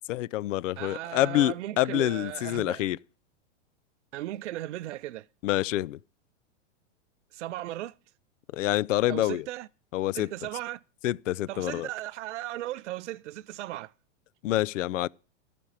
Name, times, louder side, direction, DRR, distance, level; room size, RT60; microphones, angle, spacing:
voice 1, 0.1-3.0 5.4-6.0 8.5-9.5 9.9-10.3 11.0-11.9 14.4-15.1, left 15 dB, 85° left, 0.5 m, -27 dB
voice 2, 0.8-2.8 4.1-5.3 7.3-7.9 9.1-9.7 10.1-10.8 11.5-13.9, right 15 dB, 70° right, 0.5 m, -36 dB
14.5 x 5.2 x 7.2 m
supercardioid pair, 175°, 37 cm